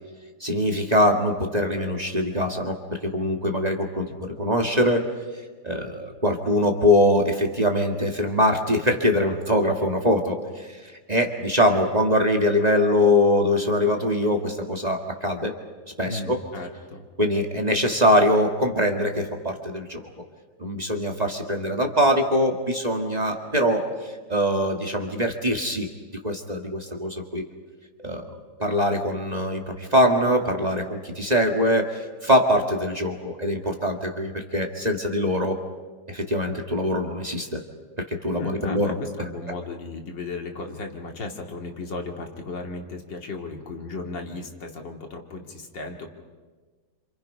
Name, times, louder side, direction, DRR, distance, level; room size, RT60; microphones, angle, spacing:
voice 1, 0.4-5.1 5.6-15.5 16.0-16.4 17.2-20.0 20.6-25.9 26.2-27.5 28.0-28.3 28.6-35.6 36.1-37.6 38.1-38.9, left 1 dB, 20° right, 2 dB, 1.8 m, -23 dB
voice 2, 16.0-17.1 38.4-46.1, left 3 dB, 70° left, 3 dB, 3.0 m, -35 dB
29.0 x 27.0 x 5.6 m, 1.4 s
omnidirectional pair, 2.0 m